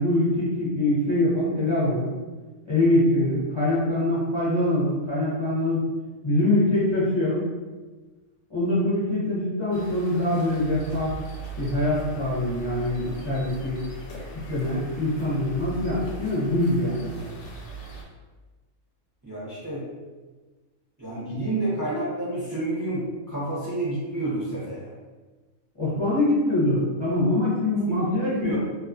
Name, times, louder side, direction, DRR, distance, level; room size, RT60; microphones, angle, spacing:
voice 1, 0.0-2.1 2.6-5.8 6.2-7.4 8.5-11.1 11.6-13.8 14.5-17.3 25.8-28.6, left 1 dB, 35° left, -10 dB, 0.5 m, -24 dB
sound 1, 9.7-18.0, right 1 dB, 65° left, 0.8 m, -40 dB
voice 2, 19.2-19.8 21.0-24.9 27.8-28.6, right 2 dB, 25° right, -9 dB, 0.4 m, -29 dB
2.3 x 2.3 x 2.4 m, 1.3 s
omnidirectional pair, 1.4 m